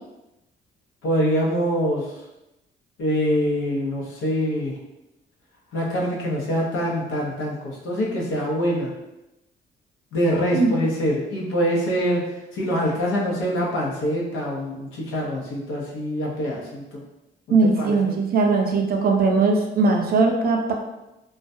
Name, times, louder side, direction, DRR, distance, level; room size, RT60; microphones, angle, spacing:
voice 1, 1.0-2.1 3.0-4.7 5.7-8.9 10.1-12.3 12.5-17.0 17.5-18.2, equal, 85° left, -3 dB, 0.7 m, -24 dB
voice 2, 17.5-20.7, right 3 dB, 50° right, 2 dB, 0.5 m, -19 dB
2.3 x 2.1 x 2.6 m, 0.95 s
cardioid pair, 90°, 20 cm